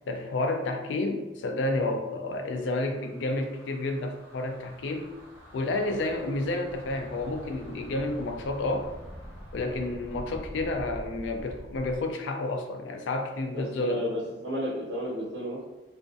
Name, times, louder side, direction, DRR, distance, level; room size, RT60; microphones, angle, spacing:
voice 1, 0.1-5.1 5.5-8.9 9.5-14.1, left 2 dB, 80° left, 4 dB, 0.3 m, -30 dB
sound 1, 2.4-12.1, equal, 15° right, 0.7 m, -46 dB
voice 2, 13.5-15.7, equal, 85° right, -5 dB, 0.5 m, -32 dB
2.4 x 2.1 x 2.5 m, 1.1 s
head